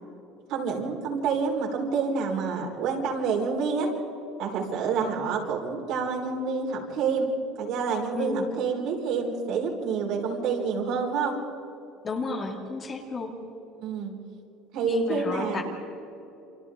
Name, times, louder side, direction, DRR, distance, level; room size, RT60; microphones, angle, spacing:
voice 1, 0.5-3.9 4.4-7.3 7.6-11.4 13.8-14.1 14.7-15.6, right 5 dB, 60° right, 0 dB, 4.6 m, -28 dB
voice 2, 8.1-8.5 12.0-13.3 14.9-15.6, left 3 dB, 25° left, 2 dB, 2.4 m, -31 dB
28.5 x 26.5 x 3.8 m, 2.8 s
cardioid pair, 155°, 0 cm